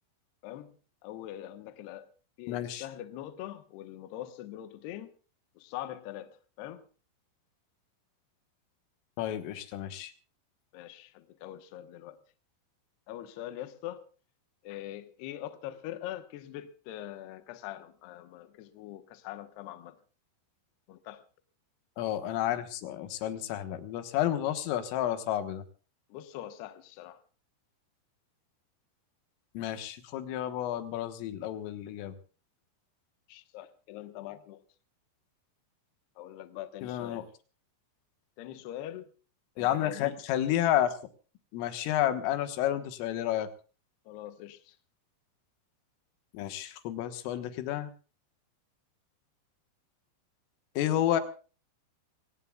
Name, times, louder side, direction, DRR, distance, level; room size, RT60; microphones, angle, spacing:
voice 1, 0.4-0.8 1.0-2.1 2.4-5.1 5.6-6.9 10.7-12.2 13.1-14.1 14.6-20.0 20.9-21.2 26.1-27.2 33.3-34.6 36.2-37.2 38.4-39.1 39.6-40.2 44.1-44.8, left 13 dB, 70° left, 2.9 m, -43 dB
voice 2, 2.5-2.9 9.2-10.1 22.0-25.6 29.6-32.2 36.8-37.3 39.6-40.9 41.5-43.5 46.3-47.9 50.8-51.2, left 12 dB, 90° left, 3.9 m, -31 dB
26.0 x 18.5 x 2.3 m
omnidirectional pair, 5.7 m